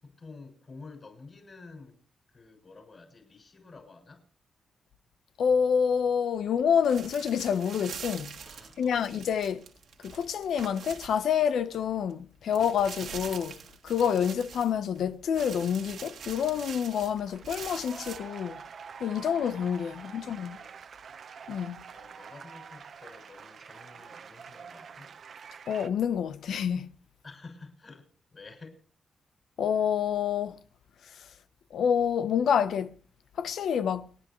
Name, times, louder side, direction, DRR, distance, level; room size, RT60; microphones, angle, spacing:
voice 1, 0.0-2.0 2.3-4.3 8.4-9.1 19.9-20.8 21.9-25.2 27.2-28.8, left 3 dB, 40° left, 6.8 m, -50 dB
voice 2, 5.4-8.3 8.8-9.6 10.0-18.6 19.0-20.6 21.5-21.8 25.7-26.9 29.6-30.6 31.0-31.3 31.7-33.0 33.4-34.1, left 8 dB, 90° left, 0.8 m, -28 dB
sound 1, 6.8-11.8 12.1-12.2 12.5-15.0 15.3-18.2, right 7 dB, 85° right, 2.3 m, -44 dB
sound 2, 17.0-25.9, right 6 dB, 65° right, 1.0 m, -46 dB
29.0 x 10.5 x 3.1 m
cardioid pair, 105°, 0 cm